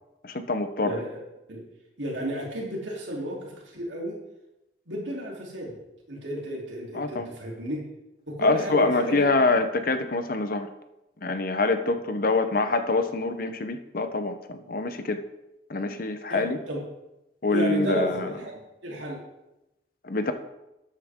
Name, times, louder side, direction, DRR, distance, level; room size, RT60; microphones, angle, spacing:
voice 1, 0.2-1.0 6.9-7.3 8.4-10.7 11.2-15.2 15.7-16.6 17.4-18.5 20.0-20.3, left 3 dB, 45° left, 9 dB, 0.7 m, -25 dB
voice 2, 0.8-1.2 1.5-1.6 2.0-4.2 4.9-5.8 6.1-7.9 8.3-9.3 16.3-16.8 17.5-18.5 18.8-19.2, right 1 dB, 75° right, -3 dB, 3.2 m, -32 dB
12.5 x 8.7 x 3.7 m, 0.93 s
head